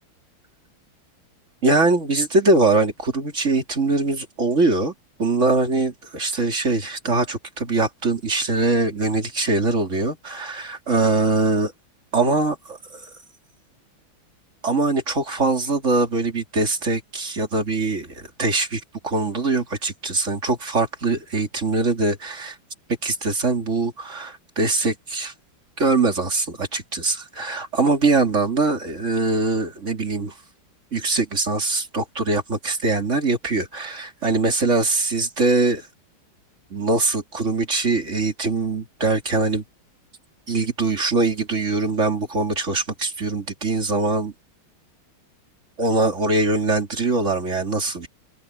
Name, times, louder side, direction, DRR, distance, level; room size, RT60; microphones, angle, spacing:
voice 1, 1.6-4.9 5.2-11.7 12.1-13.1 14.6-22.6 23.0-25.3 25.8-30.4 30.9-35.9 36.7-39.6 40.5-44.3 45.8-48.1, right 3 dB, 35° right, 3.2 m, -22 dB
omnidirectional pair, 2.3 m